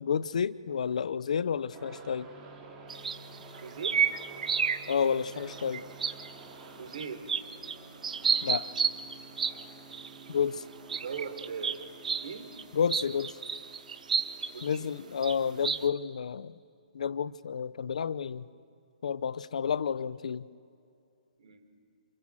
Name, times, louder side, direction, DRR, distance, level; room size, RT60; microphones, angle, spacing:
voice 1, 0.0-2.3 4.9-5.8 8.4-8.7 10.3-10.6 12.7-13.3 14.6-16.5 16.9-18.4 19.0-20.4, left 7 dB, 65° left, 17 dB, 0.8 m, -30 dB
sound 1, 1.7-15.8, right 3 dB, 15° right, 3.8 m, -50 dB
sound 2, 2.9-4.9 5.3-6.4 6.9-7.7 8.0-9.6 9.9-10.1 10.9-12.3 12.6-12.7 12.9-14.8 15.2-15.3 15.6-15.8, right 6 dB, 80° right, 1.4 m, -30 dB
voice 2, 3.6-4.1 6.8-7.3 10.9-11.8 12.2-12.5 14.5-14.9 21.4-21.6, right 6 dB, 60° right, 7 dB, 4.2 m, -40 dB
28.5 x 27.0 x 7.6 m, 2.4 s
hypercardioid pair, 170°, 4 cm